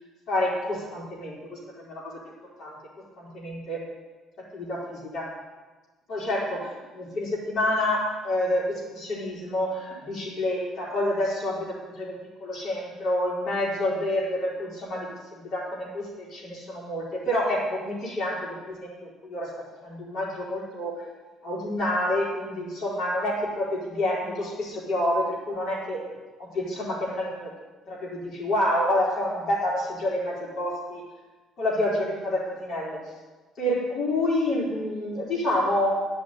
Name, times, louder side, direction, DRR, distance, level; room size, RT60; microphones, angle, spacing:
voice 1, 0.3-2.1 2.6-2.7 3.2-3.8 4.5-5.3 6.1-18.9 19.2-19.5 19.8-21.0 21.4-26.1 26.4-27.5 27.9-31.0 31.6-33.0 33.6-35.9, left 1 dB, 65° left, -8 dB, 4.2 m, -28 dB
10.5 x 6.3 x 9.0 m, 1.3 s
cardioid pair, 115°, 0 cm